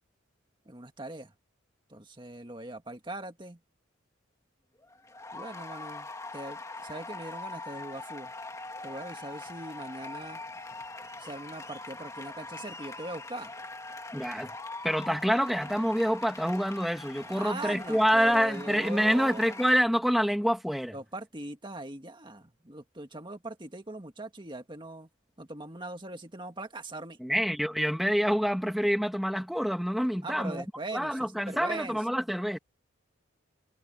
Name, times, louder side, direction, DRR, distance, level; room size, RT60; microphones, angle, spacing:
voice 1, 0.7-1.3 1.9-3.6 5.3-6.1 6.3-8.3 8.8-10.4 11.2-13.5 17.1-19.6 20.9-25.1 25.4-27.2 30.2-32.0, right 2 dB, 25° right, 2.0 m, -41 dB
sound 1, 4.8-19.8, left 2 dB, 15° left, 2.7 m, -42 dB
voice 2, 14.1-14.5 14.8-20.9 27.2-30.6 30.9-32.6, equal, ahead, 1.8 m, -27 dB
head